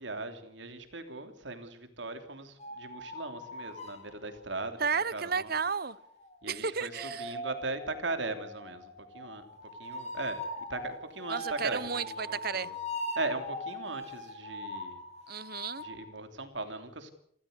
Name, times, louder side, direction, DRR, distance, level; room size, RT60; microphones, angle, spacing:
voice 1, 0.0-4.8 5.1-5.5 6.4-9.4 9.8-10.4 10.7-12.8 13.1-15.0 15.8-17.1, right 3 dB, 80° right, 3.3 m, -39 dB
sound 1, 2.6-4.4 5.5-16.0, left 1 dB, 35° left, 4.6 m, -41 dB
voice 2, 4.8-6.0 6.5-7.3 11.3-12.7 15.3-15.8, right 6 dB, 55° right, 0.9 m, -33 dB
28.0 x 14.5 x 8.2 m
head